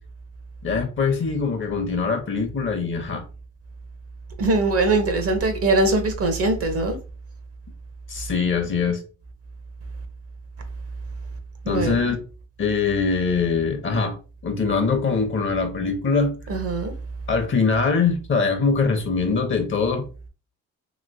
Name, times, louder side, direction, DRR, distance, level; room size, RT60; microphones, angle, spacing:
voice 1, 0.6-3.2 8.1-9.0 11.7-12.2 12.6-14.2 14.4-16.4 17.3-20.0, left 4 dB, 40° left, 0.8 m, -22 dB
voice 2, 4.4-7.0 11.6-12.1 16.5-16.9, right 2 dB, 50° right, 0.8 m, -22 dB
3.0 x 2.9 x 2.6 m
cardioid pair, 90°, 30 cm